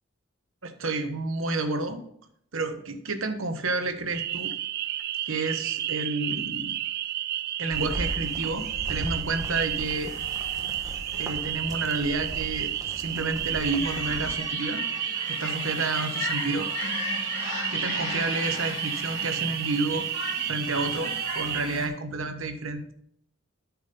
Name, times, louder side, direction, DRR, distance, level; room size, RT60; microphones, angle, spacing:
voice 1, 0.6-2.0 2.5-4.5 5.3-6.7 7.6-10.1 11.1-14.9 15.3-16.7 17.7-20.1 20.5-22.9, right 3 dB, 70° right, 7 dB, 1.1 m, -30 dB
sound 1, 4.1-21.6, right 12 dB, 45° right, 0.3 m, -32 dB
sound 2, 7.7-14.4, right 1 dB, 15° right, 1.1 m, -38 dB
sound 3, 7.8-21.9, left 3 dB, 75° left, 2.3 m, -37 dB
8.6 x 6.3 x 5.3 m, 0.68 s
head